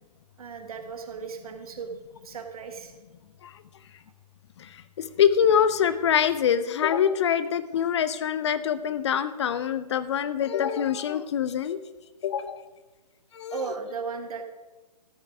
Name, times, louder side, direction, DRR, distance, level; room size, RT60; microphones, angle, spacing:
voice 1, 0.4-1.9 2.2-3.0 13.5-14.4, right 5 dB, 60° right, 6 dB, 1.5 m, -36 dB
voice 2, 5.0-11.8 12.2-12.6 13.3-13.6, left 8 dB, 40° left, 14 dB, 0.5 m, -24 dB
13.5 x 8.0 x 4.9 m, 1.2 s
figure-of-eight pair, 135°, 21 cm